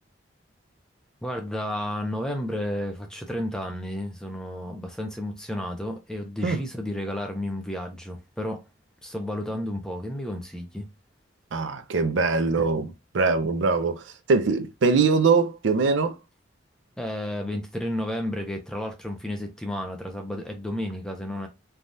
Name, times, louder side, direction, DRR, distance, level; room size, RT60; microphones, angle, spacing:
voice 1, 1.2-8.6 9.0-10.9 17.0-21.5, left 1 dB, 5° left, 0.5 m, -32 dB
voice 2, 11.5-16.2, right 4 dB, 75° right, 0.5 m, -23 dB
3.3 x 2.3 x 2.6 m
head